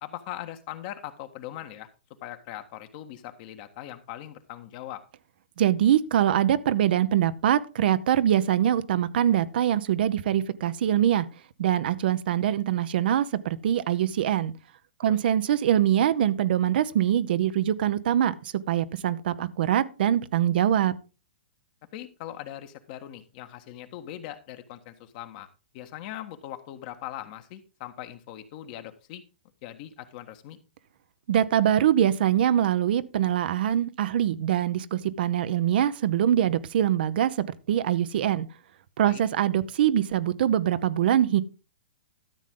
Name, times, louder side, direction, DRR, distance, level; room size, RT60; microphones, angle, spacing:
voice 1, 0.0-1.9 2.2-5.0 15.0-15.2 21.9-25.5 25.7-29.2 29.6-30.6 39.0-39.2, left 12 dB, 45° left, 1.5 m, -40 dB
voice 2, 5.6-11.3 11.6-14.5 15.0-20.9 31.3-37.4 37.7-38.5 39.0-41.4, right 10 dB, 60° right, 0.8 m, -23 dB
13.0 x 7.4 x 3.8 m
hypercardioid pair, 120°, 6 cm